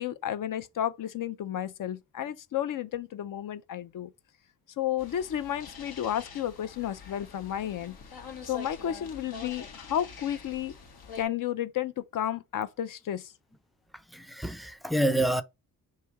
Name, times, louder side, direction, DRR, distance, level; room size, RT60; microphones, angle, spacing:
voice 1, 0.0-4.1 4.8-8.0 8.5-10.7 11.2-13.3, left 11 dB, 60° left, 0.5 m, -32 dB
sound 1, 5.0-11.2, left 5 dB, 80° left, 1.0 m, -45 dB
voice 2, 14.1-15.4, right 1 dB, ahead, 0.4 m, -27 dB
3.3 x 2.7 x 4.5 m
cardioid pair, 75°, 37 cm